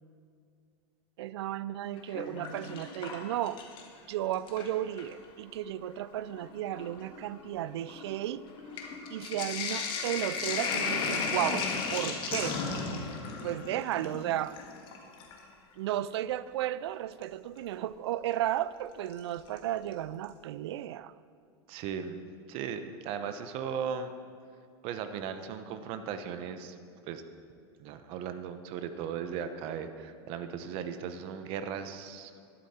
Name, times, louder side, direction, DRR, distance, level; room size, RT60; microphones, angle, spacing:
voice 1, 1.2-3.6 4.1-8.4 9.1-12.6 12.8-13.1 13.4-14.5 15.8-21.1, right 12 dB, 70° right, 17 dB, 0.4 m, -34 dB
Sink (filling or washing), 2.0-4.0 4.3-5.2 6.0-6.1 6.3-15.4 17.2-17.3 19.1-19.6 19.9-20.0 20.2-20.3, left 5 dB, 35° left, 1.7 m, -35 dB
voice 2, 21.7-22.2 22.5-24.1 24.8-26.8 27.1-27.2 27.8-32.3, right 7 dB, 40° right, 9 dB, 0.9 m, -37 dB
12.0 x 11.5 x 4.3 m, 2.4 s
supercardioid pair, 140°, 14 cm